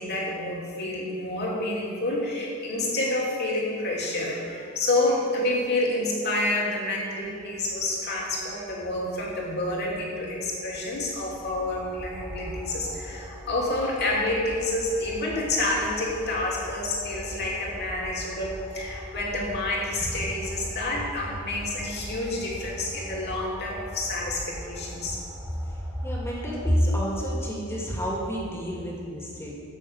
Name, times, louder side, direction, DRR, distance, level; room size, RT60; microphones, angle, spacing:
voice 1, 0.0-25.2, left 2 dB, 55° left, -3 dB, 2.9 m, -28 dB
sound 1, 7.2-26.7, equal, 10° right, 1.7 m, -41 dB
voice 2, 26.0-29.5, equal, 15° left, -3 dB, 2.5 m, -28 dB
15.0 x 6.5 x 7.3 m, 2.5 s
head